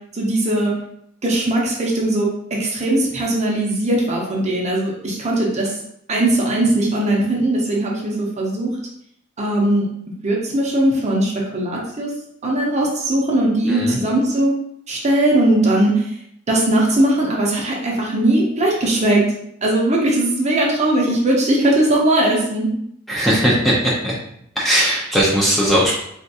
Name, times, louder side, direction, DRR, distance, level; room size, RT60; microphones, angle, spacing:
voice 1, 0.1-0.7 1.2-2.3 2.6-5.7 6.1-8.7 9.4-9.9 10.2-12.1 12.4-14.5 14.9-16.1 16.5-19.2 19.6-22.7, right 1 dB, 35° right, -2 dB, 0.7 m, -19 dB
voice 2, 13.7-14.0 23.1-23.7 24.0-24.1 24.6-25.9, equal, ahead, -6 dB, 0.5 m, -18 dB
3.4 x 2.4 x 2.7 m, 0.72 s
head